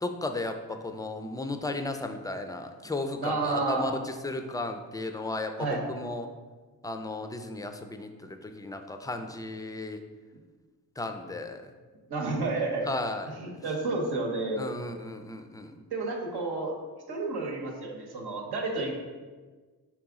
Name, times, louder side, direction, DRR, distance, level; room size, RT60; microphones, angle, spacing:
voice 1, 0.0-6.3 6.8-10.0 11.0-11.7 12.9-13.4 14.6-15.7, left 2 dB, 10° left, 6 dB, 0.3 m, -35 dB
voice 2, 3.2-3.9 5.6-5.8 12.1-12.9 13.3-14.7 15.9-16.7 17.1-18.9, right 3 dB, 75° right, 0 dB, 0.9 m, -30 dB
4.7 x 3.0 x 3.6 m, 1.4 s
supercardioid pair, 50°, 39 cm